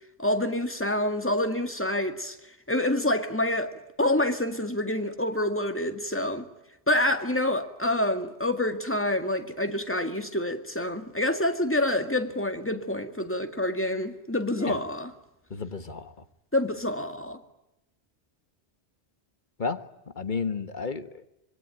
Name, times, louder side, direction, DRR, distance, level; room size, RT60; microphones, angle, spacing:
voice 1, 0.2-2.4 2.7-6.5 6.9-15.1 16.5-17.4, left 1 dB, 10° left, 2.0 m, -27 dB
voice 2, 15.5-16.1 19.6-19.8 20.1-21.2, left 4 dB, 45° left, 1.5 m, -32 dB
25.5 x 22.5 x 9.3 m
omnidirectional pair, 1.1 m